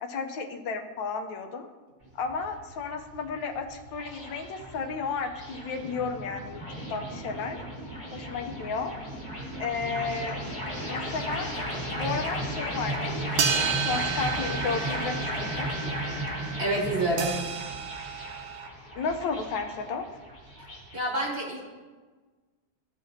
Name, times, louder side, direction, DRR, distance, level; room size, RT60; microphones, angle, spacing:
voice 1, 0.0-1.7 2.2-6.6 6.9-7.6 8.1-8.9 9.6-10.4 10.9-11.5 11.9-15.7 18.9-20.0, left 5 dB, 80° left, 4 dB, 1.4 m, -33 dB
sound 1, 2.0-21.0, equal, 15° left, 1.8 m, -35 dB
sound 2, 13.4-18.7, right 7 dB, 75° right, 0.7 m, -32 dB
voice 2, 16.6-17.4 20.9-21.6, right 1 dB, 35° right, -3 dB, 1.4 m, -27 dB
14.5 x 4.9 x 2.7 m, 1.3 s
omnidirectional pair, 2.0 m